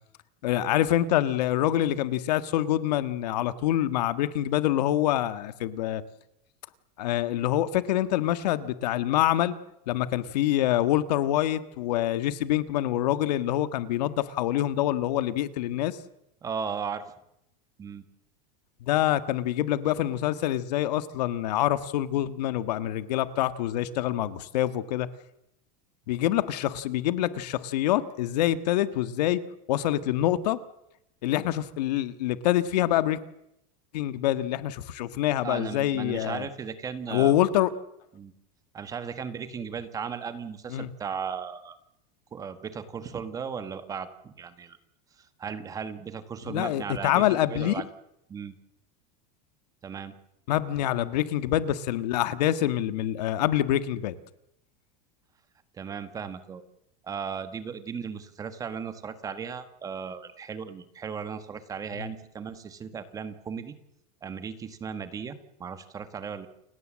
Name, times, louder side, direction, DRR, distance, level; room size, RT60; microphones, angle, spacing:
voice 1, 0.4-6.0 7.0-9.5 9.9-16.0 18.8-25.1 26.1-29.4 29.7-30.6 31.2-33.2 33.9-36.5 37.1-37.7 40.7-40.9 46.5-47.8 50.5-54.1 62.0-62.1, left 13 dB, 80° left, 12 dB, 1.6 m, -26 dB
voice 2, 16.4-17.0 17.8-18.0 35.4-37.3 38.1-38.3 38.7-41.8 42.3-44.8 45.2-47.8 48.3-48.5 49.8-50.1 55.7-56.6 57.0-63.8 64.2-66.5, right 6 dB, 15° right, 11 dB, 1.5 m, -36 dB
29.0 x 17.5 x 7.5 m, 0.81 s
supercardioid pair, 170°, 21 cm